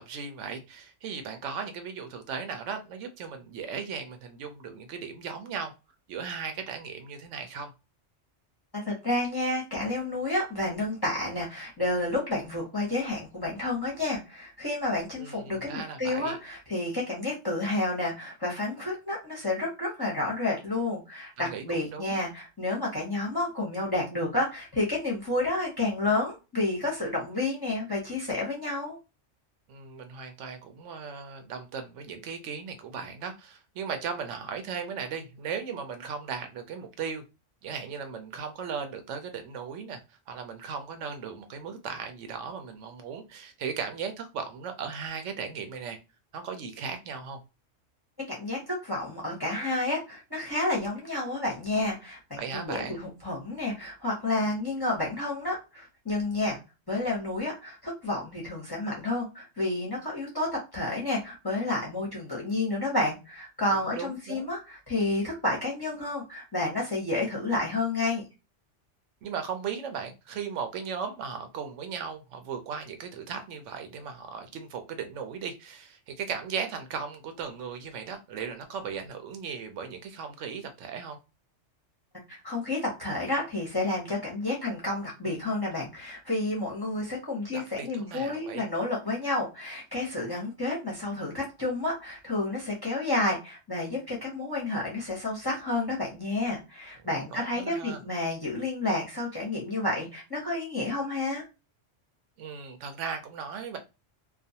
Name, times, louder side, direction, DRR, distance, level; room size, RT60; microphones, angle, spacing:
voice 1, 0.0-5.7 6.1-7.7 15.2-16.4 21.4-22.2 29.7-37.2 37.6-46.0 46.3-47.4 52.4-53.0 63.9-64.5 69.2-81.2 87.5-88.6 97.3-98.0 102.4-103.8, right 6 dB, 75° right, 0.9 m, -37 dB
voice 2, 8.7-29.0 48.3-56.6 56.9-68.2 82.4-101.4, left 2 dB, 25° left, 0.6 m, -30 dB
2.4 x 2.2 x 2.7 m
omnidirectional pair, 1.3 m